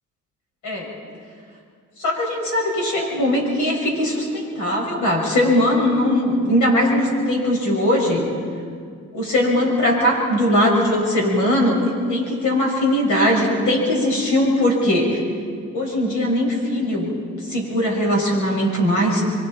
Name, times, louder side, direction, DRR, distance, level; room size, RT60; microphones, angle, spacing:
voice 1, 2.0-8.3 9.1-15.2 15.7-17.1 17.4-19.2, left 1 dB, 80° left, -1 dB, 6.5 m, -20 dB
27.0 x 23.0 x 4.5 m, 2.2 s
cardioid pair, 90°, 30 cm